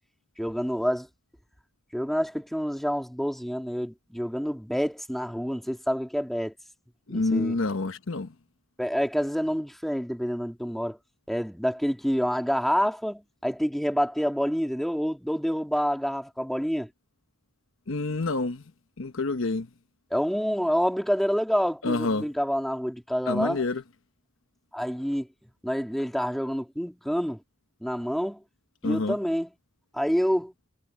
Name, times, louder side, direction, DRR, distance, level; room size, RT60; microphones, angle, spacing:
voice 1, 0.4-1.1 1.9-6.5 7.1-7.6 8.8-11.0 11.3-16.9 20.1-23.6 24.7-25.3 25.6-27.4 27.8-28.4 28.8-29.5 29.9-30.5, equal, ahead, 2.8 m, -27 dB
voice 2, 7.1-8.3 17.9-18.6 19.0-19.7 21.8-22.2 23.3-23.8 28.8-29.2, left 3 dB, 70° left, 1.0 m, -27 dB
head